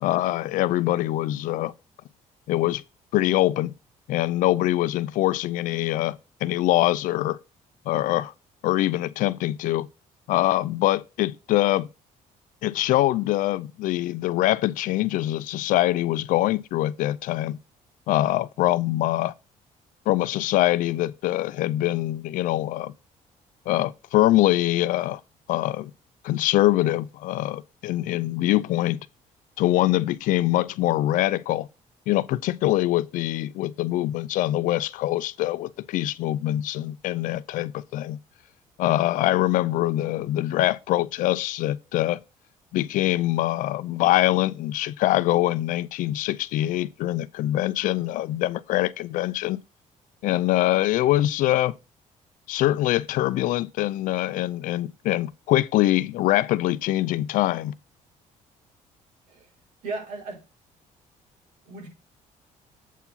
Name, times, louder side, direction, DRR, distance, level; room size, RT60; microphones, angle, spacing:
voice 1, 0.0-1.7 2.5-2.8 3.1-3.7 4.1-7.4 7.9-8.3 8.6-9.9 10.3-11.9 12.6-17.6 18.1-19.3 20.1-22.9 23.7-25.2 25.5-25.9 26.2-29.0 29.6-31.7 32.1-38.2 38.8-42.2 42.7-49.6 50.2-51.7 52.5-57.8, left 15 dB, 80° left, 0.5 m, -24 dB
voice 2, 59.8-60.4 61.6-61.9, right 3 dB, 75° right, 5.0 m, -35 dB
8.1 x 4.7 x 5.6 m
cardioid pair, 160°, 14 cm